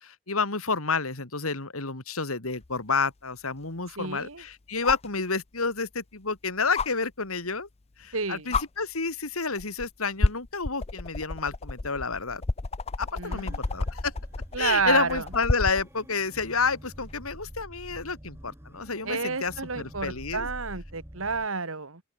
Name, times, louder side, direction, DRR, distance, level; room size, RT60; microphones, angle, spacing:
voice 1, 0.0-7.7 8.0-12.4 13.0-14.1 14.6-20.5, left 4 dB, 85° left, 3.1 m, -30 dB
sound 1, 2.6-2.7 4.8-5.1 6.7-6.9 8.0-8.1 8.5-8.7 9.6-9.8 10.2-15.9 17.5-17.6, left 3 dB, 30° left, 0.6 m, -30 dB
voice 2, 4.0-4.4 8.1-8.5 13.2-13.6 14.5-15.2 19.0-22.0, right 4 dB, 70° right, 2.2 m, -30 dB
sound 2, 13.2-21.5, equal, 10° right, 1.8 m, -46 dB
open air
head